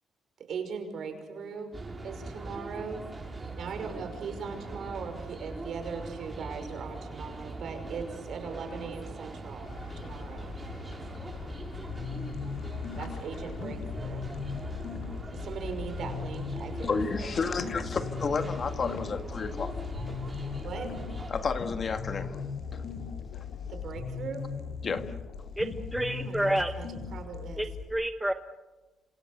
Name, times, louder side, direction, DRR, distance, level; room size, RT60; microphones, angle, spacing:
voice 1, 0.4-1.7 2.0-3.0 3.3-9.7 10.0-10.5 13.0-14.2 15.3-17.0 17.2-17.6 20.6-20.9 23.7-24.5 26.1-27.6, right 5 dB, 65° right, 6 dB, 5.5 m, -39 dB
sound 1, 1.7-21.3, right 2 dB, 20° right, 5.6 m, -41 dB
sound 2, 9.6-27.4, left 7 dB, 85° left, 2.6 m, -45 dB
sound 3, 11.8-27.8, left 5 dB, 70° left, 6.5 m, -38 dB
voice 2, 16.9-19.7 21.3-22.4 22.7-22.8 23.3-23.4 24.8-25.1, left 4 dB, 45° left, 8 dB, 1.8 m, -31 dB
voice 3, 25.6-26.7 27.6-28.3, right 1 dB, 5° right, 8 dB, 1.1 m, -29 dB
27.0 x 27.0 x 6.8 m, 1.2 s
cardioid pair, 90°, 0 cm